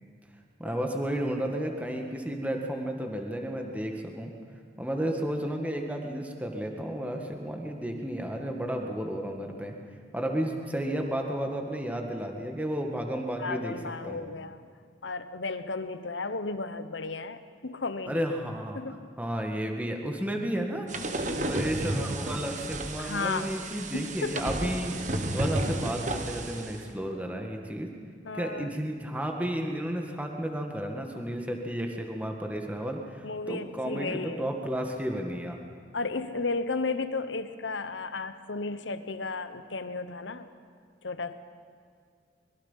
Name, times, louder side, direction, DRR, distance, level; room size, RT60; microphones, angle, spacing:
voice 1, 0.6-4.3 4.8-9.8 10.1-13.7 14.0-14.2 18.1-18.8 19.2-20.9 21.5-25.0 25.3-27.9 28.3-35.6, right 1 dB, 10° right, 2 dB, 1.9 m, -32 dB
voice 2, 13.4-14.6 15.0-18.2 18.7-19.1 23.0-23.5 23.9-24.5 28.2-28.7 33.2-34.4 35.9-40.5 41.0-41.3, left 3 dB, 85° left, 11 dB, 1.1 m, -34 dB
sound 1, 20.9-26.8, right 1 dB, 40° right, 1.5 m, -32 dB
24.5 x 22.5 x 5.7 m, 2.1 s
head